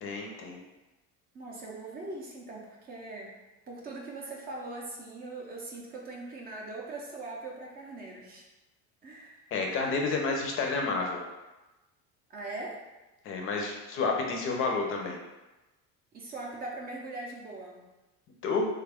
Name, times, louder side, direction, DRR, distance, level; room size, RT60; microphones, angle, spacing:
voice 1, 0.0-0.6 9.5-11.2 13.2-15.2 18.4-18.7, left 4 dB, 40° left, 1 dB, 0.5 m, -30 dB
voice 2, 1.3-3.3 3.7-8.4 9.0-9.5 10.2-10.3 12.3-12.8 16.1-17.8, right 2 dB, 30° right, -1 dB, 0.5 m, -41 dB
3.3 x 2.3 x 3.4 m, 1.1 s
cardioid pair, 150°, 32 cm